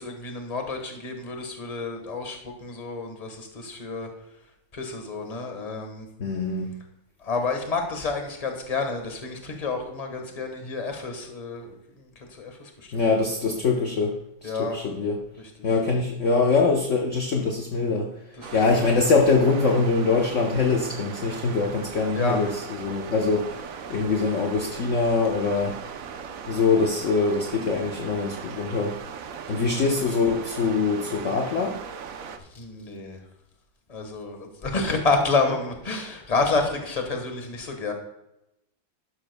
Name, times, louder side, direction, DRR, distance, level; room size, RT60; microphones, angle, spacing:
voice 1, 0.0-4.1 4.7-6.0 7.2-11.8 12.4-13.0 14.4-14.8 18.4-18.9 19.6-19.7 22.1-22.4 29.5-29.8 32.5-33.2 33.9-37.9, left 3 dB, 20° left, 4 dB, 1.2 m, -29 dB
voice 2, 6.2-6.7 12.9-14.2 14.4-15.2 15.6-18.1 18.5-23.6 23.9-25.8 26.5-29.0 29.5-31.8, left 4 dB, 50° left, 2 dB, 0.9 m, -23 dB
sound 1, 18.4-32.4, right 6 dB, 65° right, 0.8 m, -38 dB
12.0 x 10.5 x 2.2 m, 0.85 s
omnidirectional pair, 2.2 m